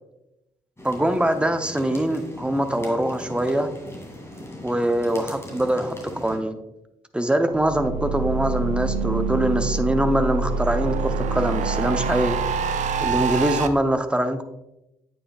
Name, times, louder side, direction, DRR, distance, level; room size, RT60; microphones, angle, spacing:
sound 1, 0.8-6.4, left 1 dB, 15° left, 2.3 m, -39 dB
voice 1, 0.8-3.7 4.6-6.6 7.1-12.4 13.0-14.4, right 1 dB, 5° right, 8 dB, 0.7 m, -23 dB
sound 2, 7.5-13.7, right 4 dB, 50° right, 0.5 m, -25 dB
8.4 x 5.2 x 2.3 m, 0.91 s
figure-of-eight pair, 40°, 15 cm